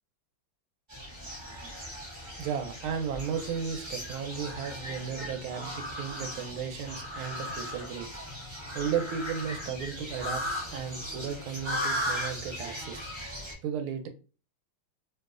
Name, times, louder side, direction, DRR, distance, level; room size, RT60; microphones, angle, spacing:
sound 1, 0.9-13.5, equal, 25° right, 0.5 m, -37 dB
voice 1, 2.4-8.2 8.7-10.4 10.7-13.1 13.6-14.1, right 7 dB, 80° right, 1.4 m, -34 dB
3.1 x 3.0 x 2.4 m
omnidirectional pair, 2.4 m